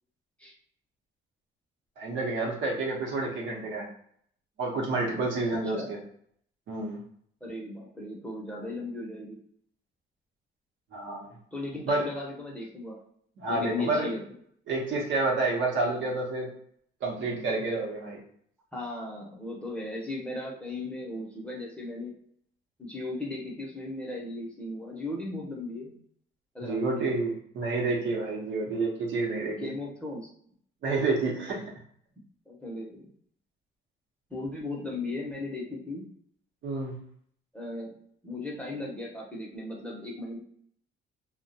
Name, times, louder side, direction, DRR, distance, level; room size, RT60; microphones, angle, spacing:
voice 1, 2.0-3.9 4.6-6.0 6.7-7.0 10.9-11.3 11.9-12.1 13.4-14.1 14.7-16.5 17.0-18.2 26.6-29.7 30.8-31.6 36.6-37.0, right 3 dB, 70° right, -1 dB, 0.8 m, -29 dB
voice 2, 7.4-9.4 11.5-13.0 13.5-14.2 18.7-22.1 22.8-25.9 26.5-27.3 29.4-30.3 32.5-33.0 34.3-36.1 37.5-37.9 38.2-40.4, left 2 dB, 5° left, -3 dB, 0.7 m, -37 dB
2.3 x 2.1 x 2.7 m, 0.65 s
cardioid pair, 90°, 20 cm